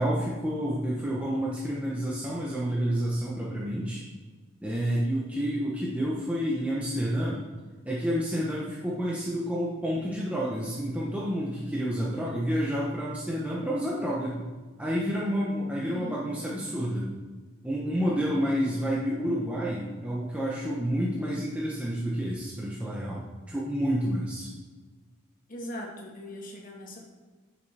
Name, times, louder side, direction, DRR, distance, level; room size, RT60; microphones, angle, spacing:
voice 1, 0.0-4.0 4.6-7.4 7.8-14.4 14.8-17.1 17.6-24.5, equal, 5° right, -5 dB, 0.8 m, -29 dB
voice 2, 15.8-16.2 25.5-27.1, left 1 dB, 40° left, -1 dB, 1.3 m, -40 dB
8.3 x 6.0 x 3.3 m, 1.4 s
head